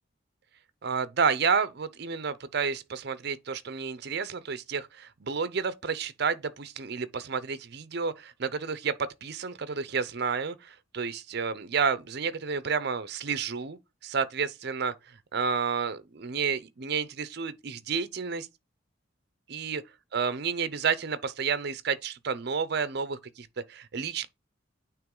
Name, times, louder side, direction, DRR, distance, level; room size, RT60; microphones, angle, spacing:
voice 1, 0.8-13.8 14.0-18.5 19.5-19.8 20.1-24.3, right 5 dB, 55° right, 0.6 m, -30 dB
9.0 x 3.1 x 3.7 m
head